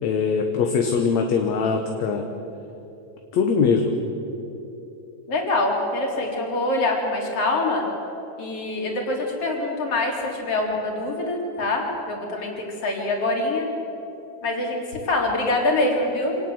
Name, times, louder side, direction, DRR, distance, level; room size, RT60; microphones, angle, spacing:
voice 1, 0.0-2.3 3.3-3.9, left 5 dB, 70° left, 4 dB, 2.5 m, -22 dB
voice 2, 5.3-7.8 8.4-13.7 14.4-16.4, left 2 dB, 50° left, 0 dB, 4.5 m, -25 dB
26.5 x 19.0 x 7.9 m, 2.9 s
omnidirectional pair, 3.4 m